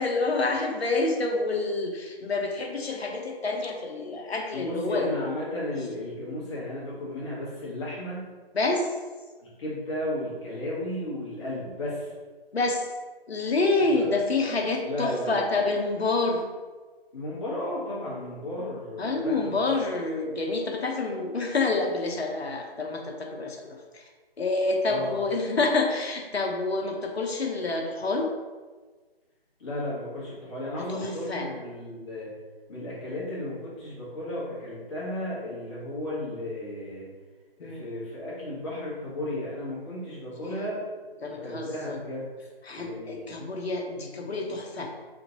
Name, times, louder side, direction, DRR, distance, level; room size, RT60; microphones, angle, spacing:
voice 1, 0.0-5.2 8.5-9.0 12.5-12.9 13.3-16.4 19.0-24.1 24.4-28.3 30.8-31.5 37.6-37.8 40.4-40.7 41.2-42.0 42.6-44.9, left 3 dB, 85° left, 2 dB, 0.7 m, -28 dB
voice 2, 4.5-8.3 9.4-12.1 13.9-14.2 14.8-15.4 17.1-19.6 19.9-20.0 24.9-25.1 29.6-32.3 32.7-37.1 37.6-40.8 41.2-42.3 42.7-43.3, left 1 dB, 30° left, -8 dB, 1.4 m, -34 dB
3.8 x 2.6 x 3.8 m, 1.3 s
figure-of-eight pair, 150°, 31 cm